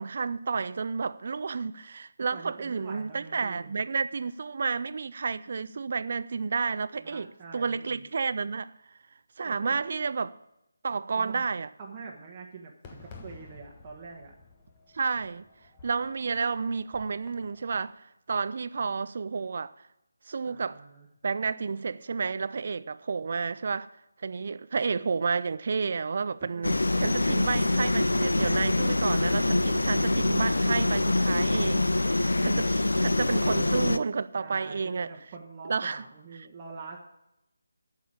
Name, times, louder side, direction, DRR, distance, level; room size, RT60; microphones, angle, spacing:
voice 1, 0.0-8.7 9.4-10.4 10.8-11.7 14.9-15.5 15.8-19.7 20.3-20.8 21.2-23.9 24.2-35.1 35.7-36.0, right 5 dB, 50° right, 0.5 m, -31 dB
voice 2, 2.3-3.8 7.0-8.1 9.4-9.8 11.1-11.4 11.8-14.3 20.4-21.1 26.5-26.8 34.4-37.0, right 4 dB, 25° right, 1.5 m, -45 dB
Fireworks, 12.8-17.9, left 4 dB, 20° left, 1.3 m, -52 dB
sound 1, 26.6-34.0, left 2 dB, 75° left, 0.6 m, -25 dB
9.3 x 6.6 x 8.6 m
figure-of-eight pair, 155°, 0 cm